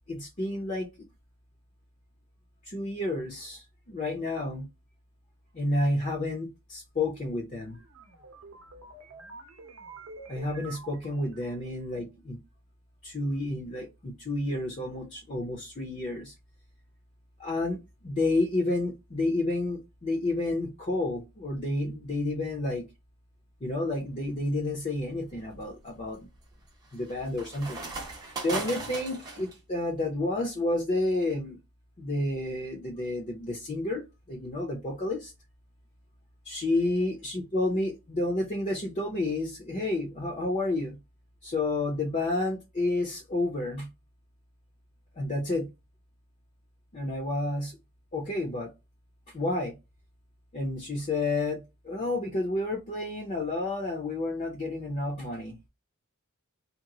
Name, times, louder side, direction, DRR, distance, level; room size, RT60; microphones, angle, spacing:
voice 1, 0.1-0.9 2.7-4.7 5.5-7.8 10.3-12.4 13.0-16.3 17.4-22.8 23.6-26.3 26.9-27.8 28.4-31.6 32.0-35.3 36.4-41.0 41.4-43.9 45.2-45.7 46.9-47.8 48.1-48.7 49.3-49.7 50.5-55.6, left 2 dB, 35° left, 0.6 m, -30 dB
sound 1, 7.7-11.9, right 3 dB, 75° right, 0.7 m, -48 dB
sound 2, 24.0-24.4 24.9-29.6, right 3 dB, 20° right, 0.8 m, -39 dB
2.9 x 2.0 x 3.7 m
head